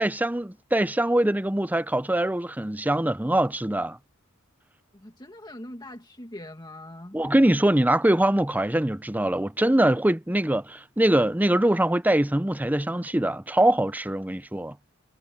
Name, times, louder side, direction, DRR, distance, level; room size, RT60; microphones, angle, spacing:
voice 1, 0.0-4.0 7.1-14.7, right 1 dB, 10° right, 0.6 m, -23 dB
voice 2, 4.9-7.2, left 1 dB, 20° left, 2.0 m, -42 dB
head